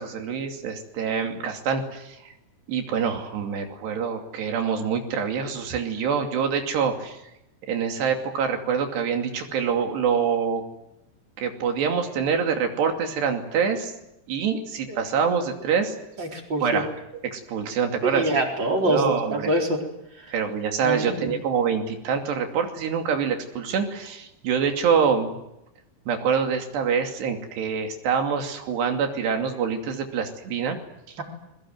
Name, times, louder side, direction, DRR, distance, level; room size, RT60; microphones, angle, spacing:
voice 1, 0.0-2.2 2.7-7.2 7.7-10.6 11.4-13.9 14.3-15.9 16.6-16.9 17.2-18.3 18.8-19.5 20.3-25.4 26.1-30.8, right 6 dB, 75° right, 4 dB, 4.7 m, -25 dB
voice 2, 16.2-16.8 18.0-19.8 20.2-20.3 20.8-21.4, right 1 dB, 25° right, 2 dB, 4.3 m, -25 dB
28.0 x 22.0 x 7.9 m, 0.86 s
omnidirectional pair, 4.9 m